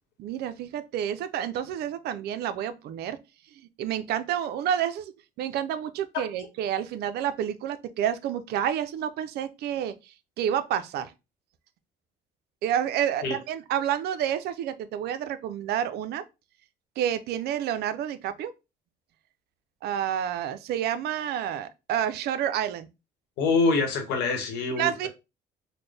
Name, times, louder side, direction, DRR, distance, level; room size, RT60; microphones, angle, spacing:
voice 1, 0.2-3.2 3.8-5.1 5.4-11.1 12.6-16.2 17.0-18.5 19.8-22.9 24.8-25.1, right 10 dB, 70° right, 0.5 m, -29 dB
voice 2, 23.4-25.1, left 4 dB, 90° left, 1.1 m, -25 dB
4.2 x 2.1 x 3.2 m
cardioid pair, 110°, 17 cm